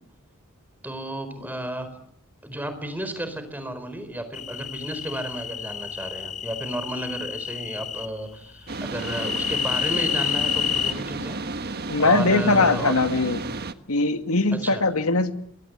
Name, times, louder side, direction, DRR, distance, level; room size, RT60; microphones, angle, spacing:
voice 1, 0.8-1.9 2.4-12.9 14.5-14.8, right 1 dB, 10° right, 10 dB, 4.3 m, -33 dB
sound 1, 4.3-8.1 9.0-10.9, left 8 dB, 35° left, 1.0 m, -29 dB
sound 2, 8.7-13.7, right 3 dB, 45° right, 1.4 m, -33 dB
voice 2, 11.9-13.4 13.9-15.3, left 3 dB, 90° left, 8 dB, 2.2 m, -21 dB
27.5 x 22.0 x 8.1 m, 0.73 s
head